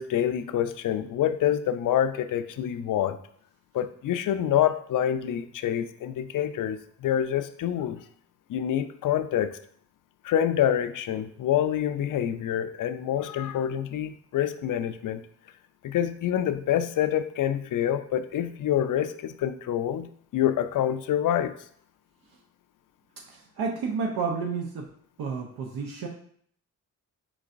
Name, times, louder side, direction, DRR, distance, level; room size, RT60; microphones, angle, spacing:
voice 1, 0.0-3.2 3.7-8.0 8.5-9.6 10.2-15.2 15.8-21.5, left 10 dB, 55° left, 11 dB, 0.5 m, -26 dB
voice 2, 23.3-24.9 25.2-26.1, right 5 dB, 75° right, 0 dB, 0.7 m, -31 dB
4.3 x 3.9 x 2.5 m, 0.62 s
supercardioid pair, 50°, 38 cm